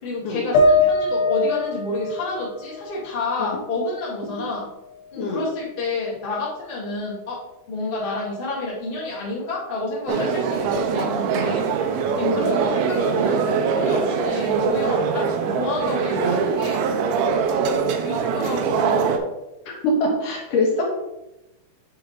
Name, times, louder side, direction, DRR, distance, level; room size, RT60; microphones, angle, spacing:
voice 1, 0.0-4.7 5.1-7.4 7.7-11.7 12.2-15.2 15.5-16.9 17.6-19.2, left 2 dB, 40° left, -6 dB, 0.7 m, -29 dB
sound 1, 0.5-4.0 4.3-5.4, left 2 dB, 90° left, 3.0 m, -23 dB
sound 2, 10.1-19.2, right 6 dB, 80° right, 2.5 m, -22 dB
voice 2, 19.7-20.8, left 2 dB, 65° left, -2 dB, 2.5 m, -23 dB
8.9 x 3.9 x 3.9 m, 0.93 s
omnidirectional pair, 4.8 m